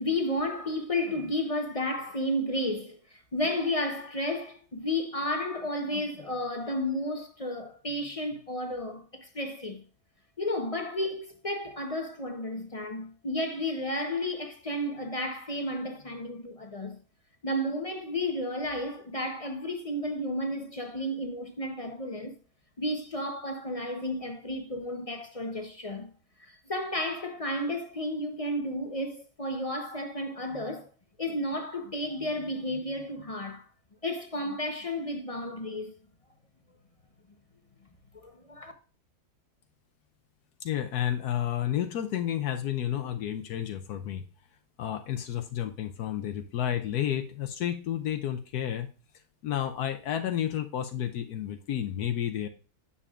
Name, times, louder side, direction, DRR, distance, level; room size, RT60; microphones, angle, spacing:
voice 1, 0.0-9.8 10.4-17.0 17.4-22.3 22.8-26.1 26.4-30.9 31.2-33.7 34.0-35.9 38.1-38.7, left 1 dB, 35° left, 0.6 m, -32 dB
voice 2, 40.6-44.2 44.8-48.9 49.4-52.5, left 10 dB, 80° left, 1.2 m, -31 dB
9.8 x 6.9 x 2.4 m
omnidirectional pair, 1.7 m